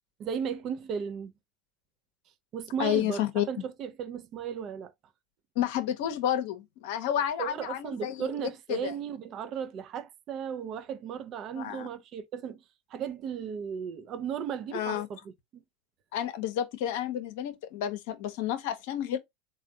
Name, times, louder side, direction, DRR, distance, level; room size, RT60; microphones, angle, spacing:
voice 1, 0.2-1.3 2.5-4.9 7.4-12.6 12.9-15.2, right 7 dB, 45° right, 0.5 m, -35 dB
voice 2, 2.8-3.6 5.6-8.2 8.7-8.9 11.5-11.9 14.7-15.1 16.1-19.2, left 10 dB, 70° left, 0.6 m, -30 dB
3.4 x 2.2 x 3.8 m
hypercardioid pair, 90°, 0 cm